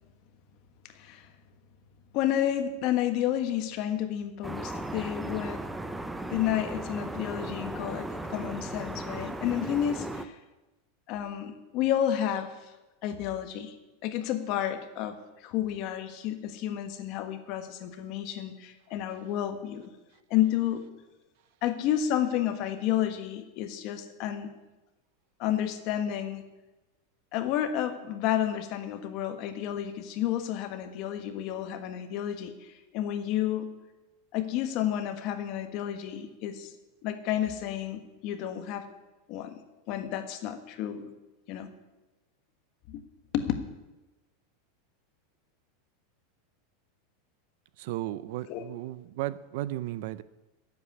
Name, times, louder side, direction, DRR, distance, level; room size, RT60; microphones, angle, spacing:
voice 1, 0.9-1.3 2.1-5.6 6.3-10.3 11.1-12.5 13.0-13.7 14.0-19.9 20.3-20.8 21.6-24.5 25.4-26.4 27.3-33.7 34.3-36.7 37.0-38.9 39.3-39.5 39.9-41.1 41.5-41.7 42.9-43.0 43.3-43.5 48.5-48.6, left 11 dB, 40° left, 1.4 m, -31 dB
sound 1, 4.4-10.3, right 1 dB, 5° right, 0.6 m, -36 dB
voice 2, 47.8-50.2, right 15 dB, 55° right, 0.6 m, -35 dB
11.5 x 8.3 x 9.7 m
supercardioid pair, 170°, 0 cm